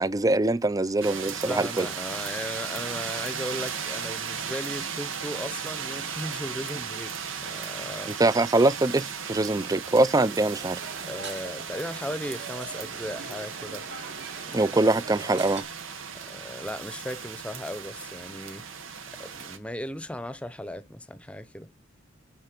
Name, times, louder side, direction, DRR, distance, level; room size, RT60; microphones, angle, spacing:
voice 1, 0.0-1.9 8.2-10.8 14.5-15.6, right 2 dB, 20° right, 0.5 m, -23 dB
sound 1, 1.0-19.6, right 7 dB, 85° right, 1.7 m, -36 dB
voice 2, 1.4-8.2 11.0-13.9 14.8-15.3 16.2-18.7 19.1-21.7, left 1 dB, 5° left, 0.8 m, -37 dB
sound 2, 10.0-15.6, right 4 dB, 60° right, 2.8 m, -42 dB
12.0 x 4.3 x 6.7 m
head